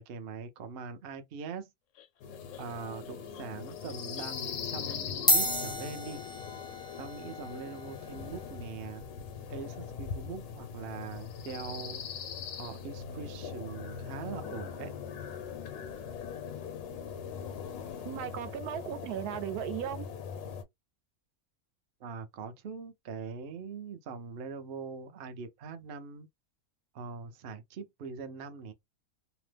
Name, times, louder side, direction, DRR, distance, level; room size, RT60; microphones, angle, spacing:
voice 1, 0.0-1.7 2.6-6.2 7.0-9.0 9.5-12.0 12.6-14.9 22.0-26.3 26.9-28.7, right 5 dB, 60° right, 0.6 m, -42 dB
sound 1, 1.9-5.4, left 8 dB, 70° left, 0.8 m, -49 dB
sound 2, 2.2-20.6, left 7 dB, 85° left, 1.2 m, -41 dB
sound 3, 5.3-13.8, equal, 5° left, 0.3 m, -36 dB
voice 2, 18.0-20.1, right 11 dB, 85° right, 1.1 m, -36 dB
2.9 x 2.0 x 3.2 m
omnidirectional pair, 1.6 m